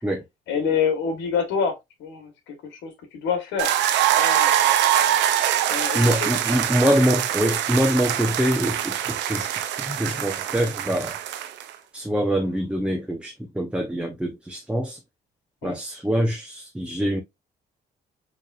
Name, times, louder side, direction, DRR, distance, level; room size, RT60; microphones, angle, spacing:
voice 1, 0.5-1.7 2.0-3.7 4.2-4.5 5.7-6.2 6.5-6.6 15.6-15.8, left 6 dB, 80° left, 1.4 m, -27 dB
sound 1, 3.6-11.7, right 11 dB, 80° right, 0.6 m, -23 dB
voice 2, 5.9-11.2 11.9-15.0 15.6-17.2, equal, 5° right, 0.8 m, -24 dB
4.7 x 3.2 x 2.5 m
supercardioid pair, 75°, 18 cm